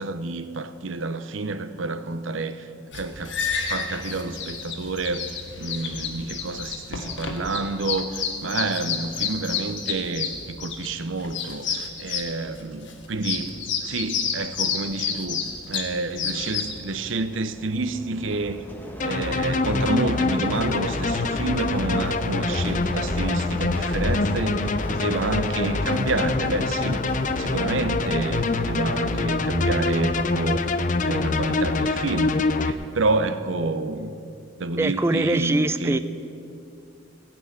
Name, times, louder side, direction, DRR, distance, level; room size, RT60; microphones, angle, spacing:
voice 1, 0.0-2.7 2.9-18.6 19.0-27.0 27.4-34.2 34.6-36.0, right 3 dB, 85° right, 12 dB, 0.7 m, -29 dB
sound 1, 2.9-16.8, left 6 dB, 65° left, 1.5 m, -30 dB
sound 2, 16.3-32.7, equal, 10° left, 1.2 m, -37 dB
sound 3, 19.0-32.7, left 3 dB, 40° left, 0.6 m, -25 dB
voice 2, 34.8-36.0, right 2 dB, 15° right, 12 dB, 0.4 m, -23 dB
17.0 x 6.1 x 9.5 m, 2.6 s
head